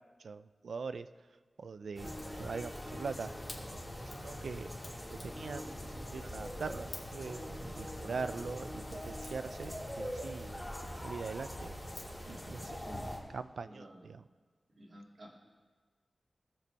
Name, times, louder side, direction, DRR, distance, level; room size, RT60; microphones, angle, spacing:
voice 1, 0.2-1.1 1.6-3.3 4.2-4.7 5.1-5.6 6.1-10.5 11.0-11.7 12.3-12.8 13.3-14.2, right 5 dB, 80° right, 13 dB, 0.4 m, -42 dB
sound 1, 2.0-13.2, equal, 5° left, 2.1 m, -42 dB
voice 2, 12.8-13.2 13.6-14.1 14.7-15.3, equal, 55° right, -3 dB, 2.2 m, -51 dB
19.0 x 6.7 x 3.4 m, 1.5 s
wide cardioid pair, 120°, 0 cm